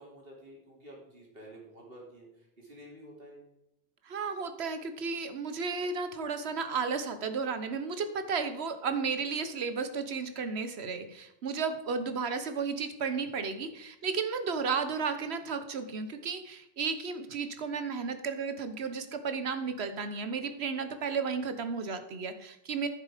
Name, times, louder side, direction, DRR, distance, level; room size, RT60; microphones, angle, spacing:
voice 1, 0.0-3.5, right 1 dB, 65° right, -2 dB, 3.1 m, -50 dB
voice 2, 4.1-22.9, right 5 dB, 85° right, 9 dB, 1.3 m, -33 dB
10.0 x 7.2 x 4.9 m, 0.86 s
omnidirectional pair, 1.1 m